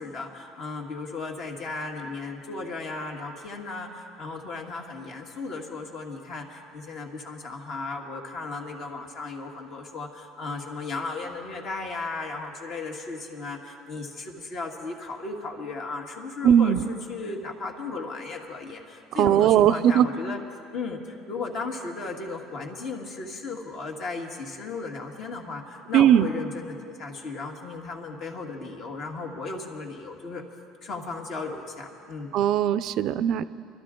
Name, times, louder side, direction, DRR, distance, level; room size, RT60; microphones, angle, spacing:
voice 1, 0.0-20.4 20.7-30.4 30.8-32.3, left 3 dB, 50° left, 1 dB, 1.7 m, -35 dB
voice 2, 16.4-16.9 19.2-20.1 25.9-26.3 32.3-33.4, right 10 dB, 55° right, 14 dB, 0.4 m, -19 dB
23.5 x 12.0 x 3.8 m, 2.5 s
cardioid pair, 130°, 0 cm